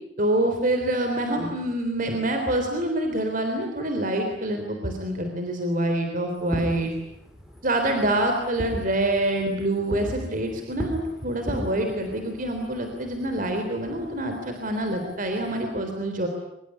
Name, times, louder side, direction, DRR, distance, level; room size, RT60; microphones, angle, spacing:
voice 1, 0.2-6.9 7.6-16.3, right 1 dB, 45° right, 5 dB, 3.6 m, -26 dB
Fireworks, 6.3-15.6, equal, 5° right, 5.5 m, -39 dB
24.5 x 22.5 x 9.7 m, 0.82 s
head